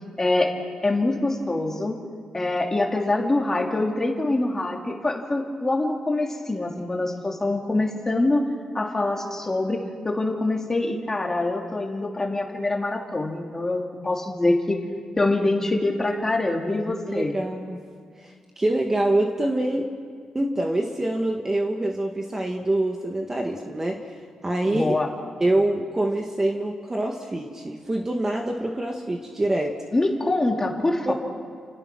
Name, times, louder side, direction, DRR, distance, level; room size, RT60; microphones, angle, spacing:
voice 1, 0.2-0.5 0.8-2.0 2.3-8.4 8.7-14.8 15.2-17.4 24.7-25.1 29.9-31.1, left 2 dB, 20° left, 1 dB, 2.9 m, -24 dB
voice 2, 17.1-17.8 18.2-19.9 20.3-24.0 24.4-24.9 25.4-29.7 31.1-31.2, right 1 dB, 20° right, 2 dB, 1.7 m, -25 dB
29.5 x 28.0 x 6.2 m, 2.1 s
wide cardioid pair, 130°, 2 cm